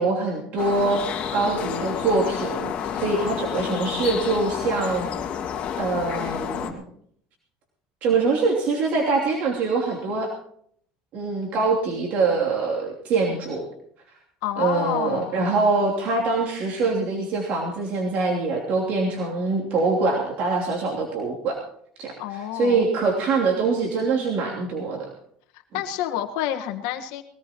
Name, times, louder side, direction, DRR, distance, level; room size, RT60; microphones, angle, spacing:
voice 1, 0.0-5.1 5.8-6.8 8.0-10.3 11.1-13.7 14.6-21.6 22.0-25.1, right 3 dB, 60° right, -2 dB, 3.0 m, -24 dB
sound 1, 0.6-6.7, left 8 dB, 50° left, 2.1 m, -30 dB
voice 2, 14.4-15.4 22.2-22.8 25.7-27.2, left 11 dB, 85° left, 6 dB, 1.5 m, -28 dB
22.0 x 17.5 x 3.0 m, 0.66 s
cardioid pair, 125°, 3 cm